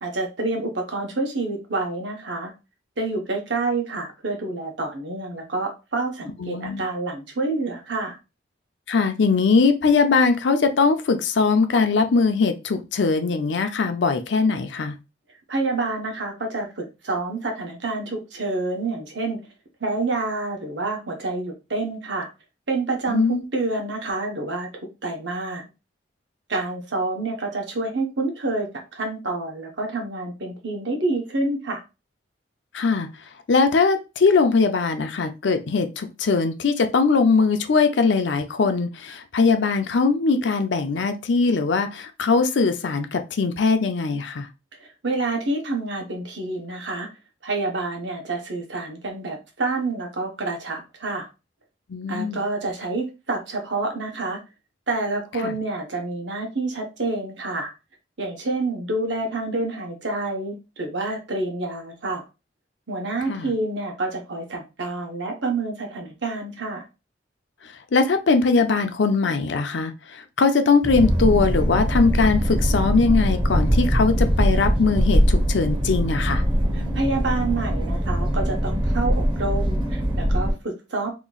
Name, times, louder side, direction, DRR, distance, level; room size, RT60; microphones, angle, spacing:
voice 1, 0.0-2.5 3.0-8.2 15.5-19.4 19.8-22.3 22.7-23.2 23.5-25.7 26.5-31.8 44.8-47.1 47.4-51.3 52.1-54.4 54.9-57.7 58.2-62.2 62.9-66.8 76.7-81.1, right 2 dB, 75° right, 1.0 m, -28 dB
voice 2, 6.4-6.8 8.9-15.0 23.1-23.4 32.7-33.1 33.5-44.5 51.9-52.4 55.4-55.5 63.3-63.5 67.9-76.4, left 4 dB, 75° left, 0.5 m, -21 dB
sound 1, 70.8-80.5, equal, 25° right, 0.6 m, -22 dB
3.0 x 2.4 x 3.8 m
head